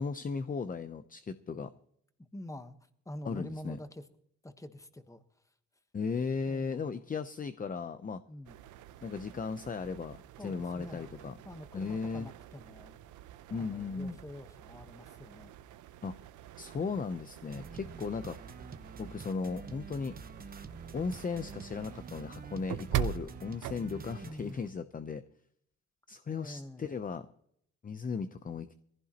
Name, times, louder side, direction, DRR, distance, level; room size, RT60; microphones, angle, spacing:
voice 1, 0.0-1.7 3.2-3.8 5.9-8.2 9.0-11.3 11.7-12.3 13.5-14.2 16.0-16.2 16.6-18.4 19.0-20.1 20.9-25.2 26.1-27.2 27.8-28.7, left 5 dB, 30° left, 10 dB, 0.7 m, -36 dB
voice 2, 2.3-2.8 3.0-4.1 4.4-5.5 6.5-6.9 8.3-8.6 10.4-11.1 11.4-13.0 13.5-15.6 24.2-24.8 26.3-26.9, left 1 dB, 10° left, 9 dB, 1.3 m, -46 dB
sound 1, 8.5-24.7, right 11 dB, 80° right, 0.7 m, -43 dB
sound 2, 17.5-24.3, right 5 dB, 30° right, 1.1 m, -47 dB
21.0 x 15.5 x 3.0 m, 0.70 s
cardioid pair, 90°, 30 cm